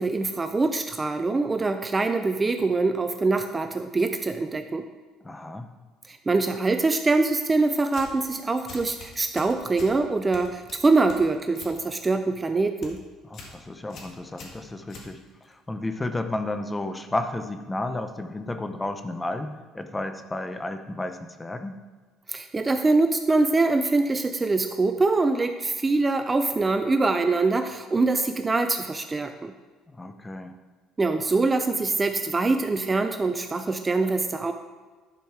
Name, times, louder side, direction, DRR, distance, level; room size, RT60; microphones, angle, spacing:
voice 1, 0.0-4.8 6.1-13.0 22.3-29.5 31.0-34.5, right 3 dB, 20° right, 7 dB, 0.5 m, -24 dB
voice 2, 5.2-5.7 13.3-21.8 29.9-30.5, left 2 dB, 15° left, 8 dB, 0.8 m, -32 dB
sound 1, 7.9-8.3 8.7-10.0 10.3-11.8 12.1-12.4 12.7-13.0 13.3-13.6 13.9-15.5, left 3 dB, 55° left, 2.0 m, -44 dB
10.5 x 5.3 x 5.9 m, 1.4 s
cardioid pair, 115°, 0 cm